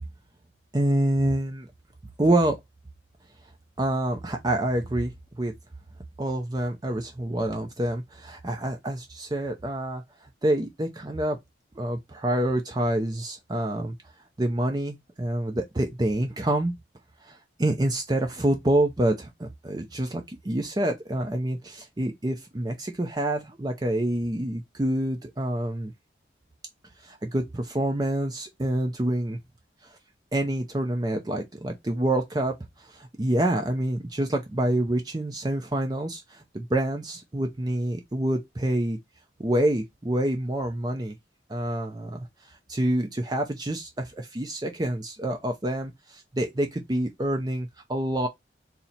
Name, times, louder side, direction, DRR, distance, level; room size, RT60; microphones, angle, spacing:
voice 1, 0.7-1.7 2.2-2.6 3.8-5.1 5.4-5.5 6.2-10.0 10.4-11.4 11.8-13.9 14.4-16.7 17.3-25.9 27.0-29.4 30.3-32.5 32.9-39.0 39.4-41.2 41.5-42.3 42.7-48.3, right 1 dB, 20° right, 0.5 m, -27 dB
4.2 x 2.1 x 4.0 m
head